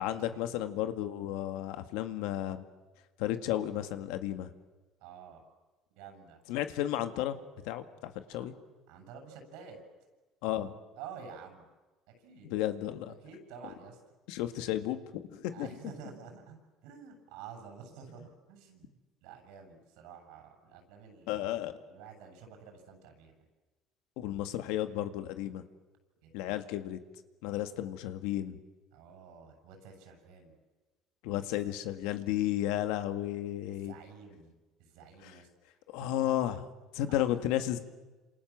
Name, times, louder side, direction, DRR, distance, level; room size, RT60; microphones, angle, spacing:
voice 1, 0.0-2.6 3.2-4.5 6.5-7.4 7.6-8.5 10.4-10.7 12.4-13.1 14.3-15.7 21.3-21.7 24.2-25.6 26.3-27.0 27.4-28.6 31.2-33.9 35.2-35.3 35.9-36.7 36.9-37.8, left 13 dB, 85° left, 9 dB, 2.0 m, -33 dB
voice 2, 5.0-5.4 5.9-6.4 8.3-8.5 8.9-9.8 11.0-11.7 12.1-12.5 13.2-14.0 15.5-18.9 19.2-21.3 21.9-23.4 26.2-26.7 28.9-30.6 31.6-31.7 33.7-34.5 34.8-35.5 36.0-36.4 37.1-37.2, right 6 dB, 85° right, 5 dB, 8.0 m, -50 dB
29.0 x 27.5 x 7.5 m, 1.2 s
cardioid pair, 125°, 0 cm